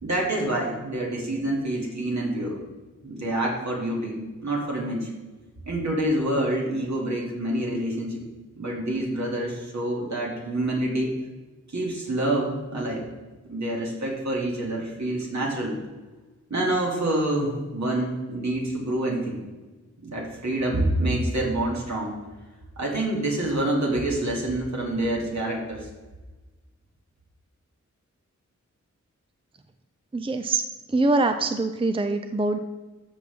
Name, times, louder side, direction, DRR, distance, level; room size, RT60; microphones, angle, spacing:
voice 1, 0.0-2.6 3.0-5.1 5.7-8.2 8.6-11.1 11.7-13.1 13.4-15.7 16.5-19.4 20.0-22.1 22.8-25.9, right 1 dB, 65° right, -3 dB, 2.7 m, -27 dB
voice 2, 30.1-30.6 30.9-32.6, right 2 dB, 20° right, 7 dB, 0.5 m, -24 dB
13.0 x 6.1 x 3.6 m, 1.2 s
wide cardioid pair, 75°, 30 cm